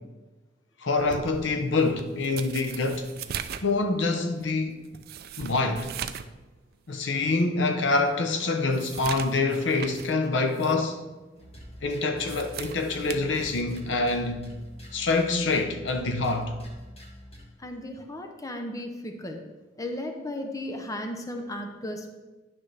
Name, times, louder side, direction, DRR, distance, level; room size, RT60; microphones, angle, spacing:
voice 1, 0.8-3.1 3.6-4.8 5.4-5.9 6.9-11.0 11.8-14.5 14.9-16.6, left 3 dB, 75° left, 0.8 m, -26 dB
sound 1, 1.0-6.4 6.7-6.8 7.4-7.5 7.9-10.2 10.5-10.8 12.0-13.9 15.0-15.3, right 8 dB, 55° right, 0.4 m, -40 dB
sound 2, 11.4-17.5, equal, 35° left, 1.3 m, -45 dB
voice 2, 17.6-19.4 19.8-22.1, left 1 dB, 20° left, 0.7 m, -35 dB
10.5 x 5.8 x 3.3 m
head